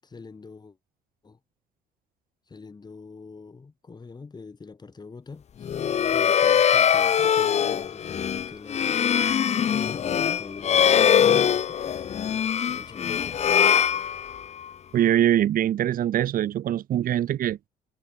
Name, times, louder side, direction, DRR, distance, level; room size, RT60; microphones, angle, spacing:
voice 1, 0.0-0.8 1.2-1.4 2.5-5.8 6.1-12.4 12.7-13.2, left 4 dB, 25° left, 7.5 m, -44 dB
sound 1, 5.6-14.6, left 8 dB, 40° left, 1.0 m, -22 dB
voice 2, 14.9-17.6, right 11 dB, 55° right, 1.4 m, -23 dB
cardioid pair, 110°, 17 cm